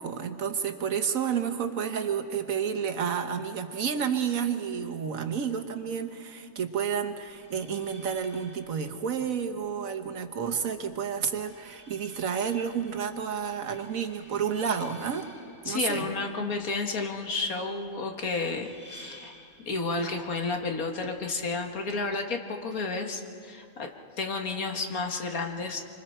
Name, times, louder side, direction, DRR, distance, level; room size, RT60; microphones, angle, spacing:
voice 1, 0.0-15.3 15.6-16.1, right 7 dB, 70° right, 6 dB, 1.5 m, -30 dB
sound 1, 7.2-22.2, equal, 30° left, 2.4 m, -54 dB
voice 2, 15.7-19.3 19.6-23.9 24.2-25.8, left 3 dB, 75° left, 3 dB, 2.0 m, -31 dB
26.0 x 25.0 x 4.5 m, 2.4 s
omnidirectional pair, 1.5 m